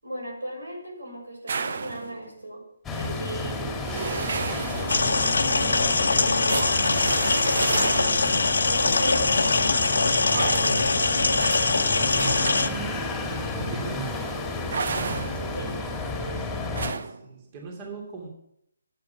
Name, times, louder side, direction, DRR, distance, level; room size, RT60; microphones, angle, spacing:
voice 1, 0.0-2.6 2.9-3.8 4.1-5.5 5.8-6.8 7.5-12.4 15.5-15.7, right 1 dB, 85° right, 1 dB, 6.2 m, -37 dB
sound 1, 1.5-2.3 3.8-8.5 10.2-11.0 11.4-13.1 14.7-15.6 16.7-17.2, right 5 dB, 55° right, 0.8 m, -32 dB
sound 2, 2.8-16.9, left 2 dB, 5° left, 2.2 m, -31 dB
sound 3, 4.9-12.7, left 3 dB, 70° left, 1.0 m, -23 dB
voice 2, 13.5-14.2 16.4-18.3, right 4 dB, 30° right, 1 dB, 2.8 m, -41 dB
14.0 x 8.8 x 5.8 m, 0.74 s
figure-of-eight pair, 145°, 0 cm